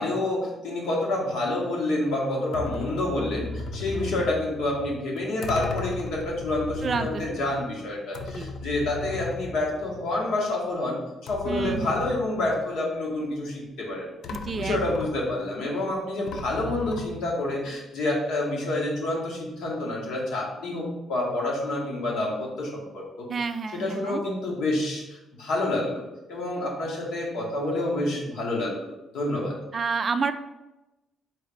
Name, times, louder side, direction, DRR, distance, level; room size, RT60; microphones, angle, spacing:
voice 1, 0.0-11.0 11.3-14.1 14.6-23.3 23.7-26.0 26.3-28.9 29.1-29.6, left 2 dB, 85° left, -2 dB, 1.1 m, -28 dB
sound 1, 2.5-10.4 10.7-10.8 11.3-12.9 13.9-14.0 14.2-15.6 16.3-17.6, left 3 dB, 70° left, 0.4 m, -37 dB
voice 2, 6.8-7.3 8.3-8.5 11.5-12.0 14.3-14.8 23.3-24.2 29.7-30.3, right 4 dB, 45° right, 9 dB, 0.3 m, -29 dB
3.8 x 3.2 x 3.3 m, 1.0 s
cardioid pair, 90°, 0 cm